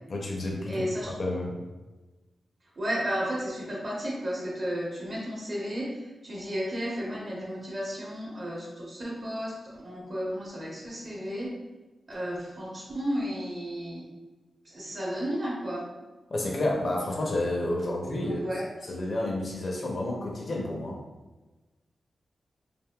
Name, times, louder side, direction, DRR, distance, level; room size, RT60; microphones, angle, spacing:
voice 1, 0.1-1.6 16.3-18.4 18.9-21.0, left 1 dB, 50° left, -1 dB, 0.5 m, -30 dB
voice 2, 0.7-1.2 2.8-11.5 12.1-14.1 14.6-15.8 18.2-18.6, equal, 50° right, -6 dB, 0.9 m, -33 dB
3.3 x 2.5 x 2.2 m, 1.2 s
wide cardioid pair, 95°, 0 cm